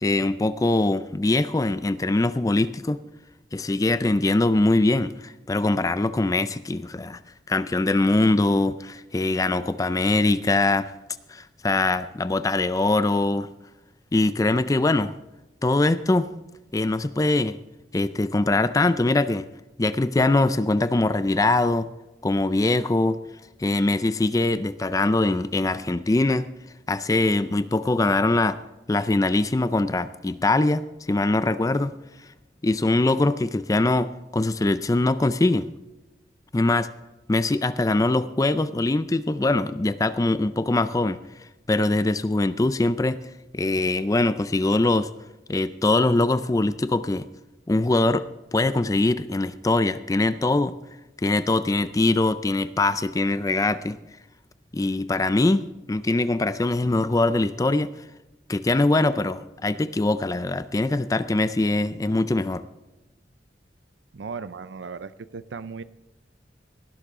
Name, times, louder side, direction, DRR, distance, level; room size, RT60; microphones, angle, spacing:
voice 1, 0.0-3.0 3.5-7.2 7.5-10.9 11.3-13.5 14.1-15.1 15.6-16.3 16.7-17.6 17.9-19.5 19.8-21.9 22.2-23.2 23.6-26.5 26.9-28.6 28.9-32.0 32.6-35.7 36.5-36.9 37.3-41.2 41.7-43.2 43.5-45.1 45.5-47.3 47.7-50.7 51.2-54.0 54.7-57.9 58.5-62.6, left 2 dB, 20° left, 13 dB, 0.4 m, -22 dB
voice 2, 64.1-65.8, right 5 dB, 90° right, 15 dB, 0.5 m, -36 dB
18.0 x 11.5 x 3.7 m, 1.0 s
head